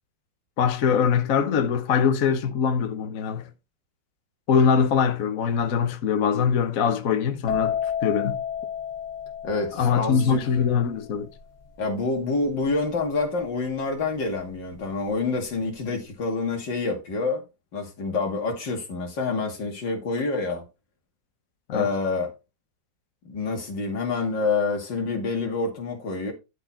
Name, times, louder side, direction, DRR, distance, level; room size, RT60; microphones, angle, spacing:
voice 1, 0.6-3.5 4.5-8.4 9.7-11.3 21.7-21.9, left 7 dB, 55° left, 1.2 m, -23 dB
sound 1, 7.5-15.0 15.3-15.8, left 8 dB, 35° left, 2.2 m, -32 dB
voice 2, 9.4-10.4 11.8-17.4 17.7-20.6 21.7-22.3 23.2-26.3, left 3 dB, 70° left, 3.1 m, -27 dB
11.5 x 4.4 x 4.4 m
omnidirectional pair, 2.0 m